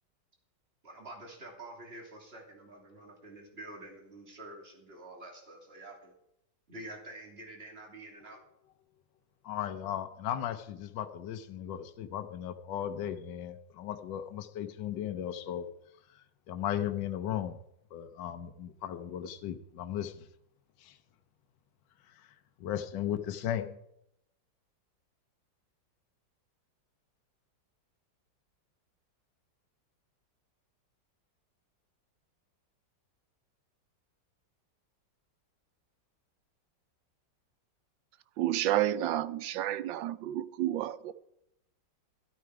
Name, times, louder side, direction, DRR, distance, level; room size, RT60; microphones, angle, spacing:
voice 1, 0.8-6.1 6.7-8.4, right 2 dB, 30° right, 3.3 m, -48 dB
voice 2, 9.4-15.7 16.1-17.6 17.9-20.3 20.8-21.0 22.0-22.3 22.6-23.8, left 10 dB, 75° left, 1.5 m, -36 dB
voice 3, 38.4-41.1, right 13 dB, 90° right, 1.5 m, -30 dB
13.5 x 13.0 x 4.8 m
omnidirectional pair, 2.0 m